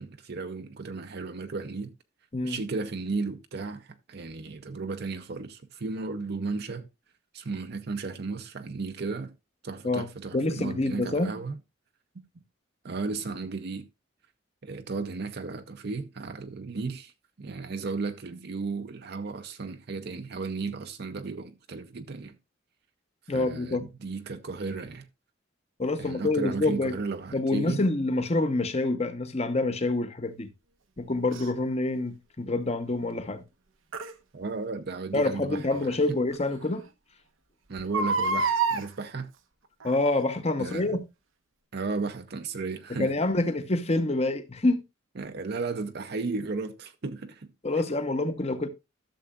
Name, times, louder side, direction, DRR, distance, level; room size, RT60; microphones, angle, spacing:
voice 1, 0.0-1.9 2.4-6.9 7.3-9.3 9.6-11.6 12.8-13.9 14.6-17.1 17.4-22.4 23.3-25.1 26.0-27.8 34.3-36.0 37.7-39.3 40.6-41.0 41.7-43.1 45.2-47.5, right 4 dB, 55° right, 0.6 m, -34 dB
voice 2, 9.8-11.3 23.3-23.8 25.8-26.9 27.3-30.5 31.0-33.4 35.1-36.9 39.8-41.0 43.0-44.8 47.6-48.7, left 2 dB, 30° left, 0.9 m, -27 dB
Crying sobbing, 31.3-31.5 33.9-34.1 35.7-35.8 36.3-36.4 36.6-36.7 37.8-38.9 39.8-40.1 40.7-40.8, right 4 dB, 90° right, 0.9 m, -27 dB
13.0 x 6.8 x 2.4 m
head